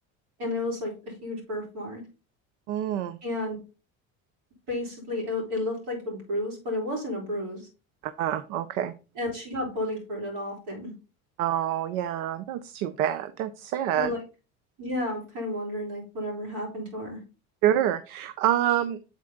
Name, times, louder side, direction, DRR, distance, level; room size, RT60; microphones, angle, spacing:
voice 1, 0.4-2.0 3.2-3.6 4.7-7.7 9.2-10.9 14.0-14.2 14.8-17.2, left 1 dB, 65° right, 0 dB, 4.1 m, -32 dB
voice 2, 2.7-3.2 8.0-8.9 11.4-14.1 17.6-19.1, right 11 dB, 80° right, 12 dB, 0.6 m, -27 dB
7.5 x 4.2 x 3.6 m, 0.32 s
supercardioid pair, 85°, 41 cm